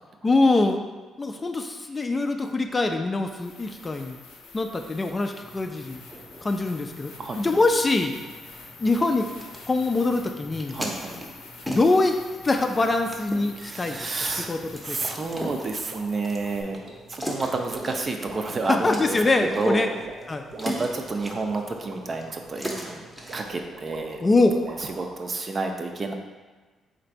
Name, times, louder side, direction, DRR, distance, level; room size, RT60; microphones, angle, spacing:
voice 1, 0.2-0.8 1.2-4.2 4.5-6.0 6.4-8.2 8.8-9.3 9.7-10.8 11.7-12.2 12.4-14.0 14.3-15.0 18.7-19.9 20.3-20.4 24.2-24.5, left 2 dB, 25° left, 5 dB, 0.3 m, -23 dB
sound 1, 2.6-2.7 3.3-16.6, left 3 dB, 85° left, 0.6 m, -46 dB
sound 2, 5.3-23.5, equal, 5° right, 0.7 m, -40 dB
voice 2, 7.2-7.6 10.7-11.1 13.6-14.6 14.8-16.8 17.1-20.0 20.6-23.0 23.3-24.2 24.7-26.1, right 3 dB, 40° right, 4 dB, 0.5 m, -30 dB
sound 3, 15.4-25.3, right 2 dB, 60° right, 0.9 m, -44 dB
3.9 x 2.6 x 4.4 m, 1.3 s
cardioid pair, 90°, 0 cm